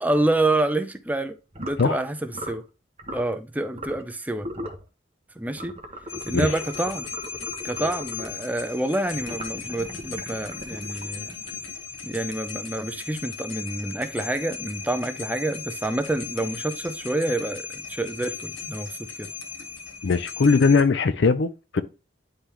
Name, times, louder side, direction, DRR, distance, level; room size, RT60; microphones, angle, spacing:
voice 1, 0.0-2.6 3.1-4.5 5.4-5.7 6.2-7.1 7.6-11.3 12.0-19.3, right 2 dB, 10° right, 0.5 m, -27 dB
sound 1, 1.5-1.9 2.3-2.6 3.0-3.3 3.7-4.1 4.4-4.8 5.5-8.4 9.1-11.9, equal, 30° right, 1.1 m, -38 dB
sound 2, 6.1-20.8, left 7 dB, 90° left, 1.1 m, -37 dB
voice 2, 20.0-21.8, left 4 dB, 60° left, 0.5 m, -20 dB
9.9 x 3.4 x 3.0 m
head